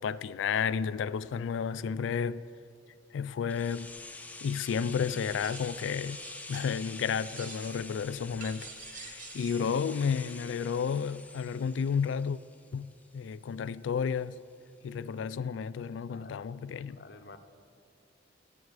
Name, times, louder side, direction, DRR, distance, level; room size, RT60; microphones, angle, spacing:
voice 1, 0.0-2.4 3.1-4.0 4.4-12.4 12.7-14.4 14.8-17.0, left 6 dB, 85° left, 0.3 m, -32 dB
sound 1, 3.5-13.3 13.6-13.7, left 3 dB, 10° left, 0.5 m, -46 dB
sound 2, 5.1-5.8 6.1-6.9 7.2-7.9 8.4-9.7, right 6 dB, 45° right, 1.0 m, -48 dB
voice 2, 16.1-16.5 16.9-17.4, left 3 dB, 55° left, 0.7 m, -50 dB
18.5 x 7.7 x 4.8 m
head